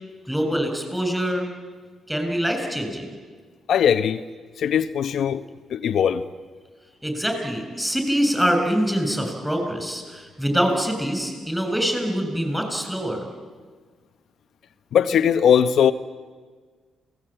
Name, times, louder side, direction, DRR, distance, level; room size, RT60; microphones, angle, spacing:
voice 1, 0.3-1.5 2.1-3.1 7.0-13.3, equal, 5° right, 4 dB, 7.3 m, -24 dB
voice 2, 3.7-4.2 4.6-5.4 5.7-6.2 14.9-15.9, left 8 dB, 70° left, 9 dB, 0.9 m, -19 dB
27.5 x 19.0 x 9.0 m, 1.5 s
cardioid pair, 85°, 0 cm